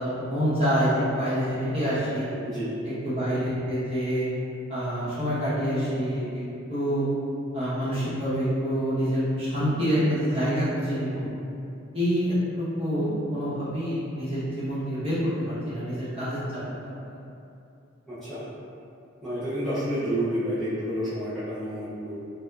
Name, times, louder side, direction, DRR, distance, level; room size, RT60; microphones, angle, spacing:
voice 1, 0.0-2.3 3.0-4.3 4.7-6.4 6.7-7.0 7.5-11.3 11.9-16.4 16.8-17.1, equal, 25° right, -12 dB, 0.8 m, -27 dB
voice 2, 18.1-18.4 19.2-22.2, equal, ahead, -15 dB, 0.3 m, -29 dB
2.8 x 2.1 x 2.2 m, 2.7 s
head